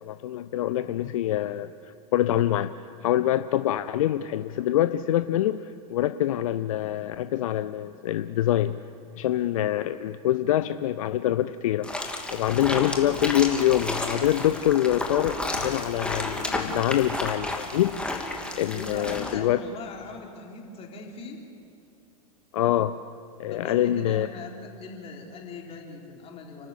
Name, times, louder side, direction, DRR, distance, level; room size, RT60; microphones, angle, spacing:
voice 1, 0.0-2.7 3.0-8.8 9.2-11.9 12.3-19.6 22.5-22.9 23.4-24.3, left 12 dB, 60° left, 13 dB, 0.6 m, -25 dB
sound 1, 11.8-19.3, left 2 dB, 5° left, 2.6 m, -32 dB
voice 2, 18.7-21.4 23.5-26.7, left 4 dB, 30° left, 0 dB, 4.0 m, -40 dB
30.0 x 13.0 x 8.4 m, 2.7 s
figure-of-eight pair, 90°, 19 cm